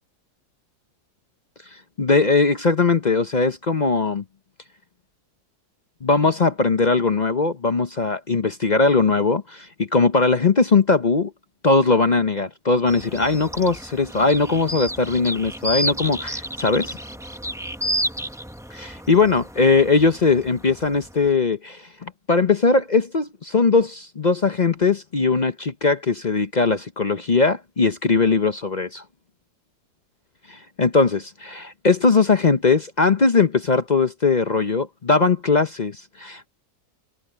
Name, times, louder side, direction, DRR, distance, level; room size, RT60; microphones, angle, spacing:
voice 1, 2.0-4.2 6.0-11.3 11.6-17.0 18.7-29.0 30.5-36.5, left 4 dB, 40° left, 0.6 m, -20 dB
sound 1, 12.9-21.3, equal, 5° right, 0.4 m, -31 dB
omnidirectional pair, 1.7 m